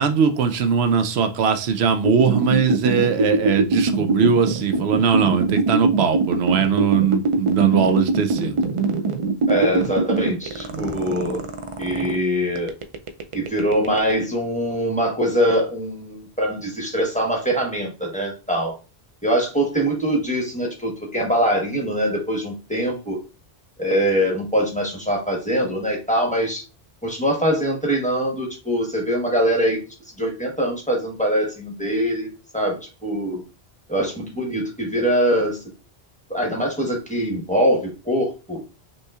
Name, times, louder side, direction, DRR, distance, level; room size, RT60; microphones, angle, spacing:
voice 1, 0.0-8.7 10.7-11.0, right 6 dB, 80° right, 0.8 m, -20 dB
sound 1, 2.1-12.2 12.6-14.2, right 3 dB, 50° right, 0.4 m, -22 dB
voice 2, 9.5-11.5 11.8-12.7 13.3-18.7 19.2-23.2 23.8-26.6 27.0-29.8 30.2-33.4 33.9-35.6 36.3-38.6, equal, 10° left, 1.0 m, -23 dB
5.3 x 3.0 x 2.3 m
omnidirectional pair, 1.1 m